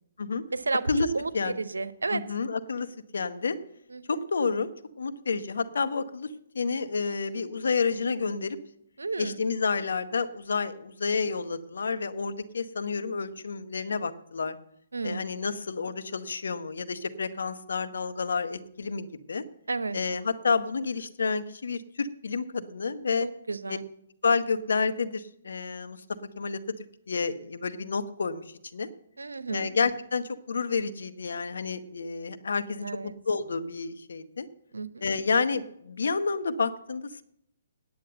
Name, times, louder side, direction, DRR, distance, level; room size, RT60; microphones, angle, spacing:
voice 1, 0.5-0.9 1.1-2.2 3.9-4.2 9.0-9.4 14.9-15.4 19.7-20.0 23.2-23.8 29.2-29.8 32.8-33.1 34.7-35.0, right 3 dB, 85° right, 13 dB, 0.8 m, -32 dB
voice 2, 2.1-2.9 3.1-3.6 4.1-4.7 5.0-6.3 6.5-8.6 9.2-14.6 15.0-19.4 19.9-23.3 23.7-23.8 24.2-26.0 26.4-26.6 27.1-28.9 29.5-34.5 35.0-37.2, left 4 dB, 70° left, 11 dB, 0.9 m, -29 dB
9.6 x 8.3 x 7.8 m, 0.75 s
figure-of-eight pair, 135°, 0 cm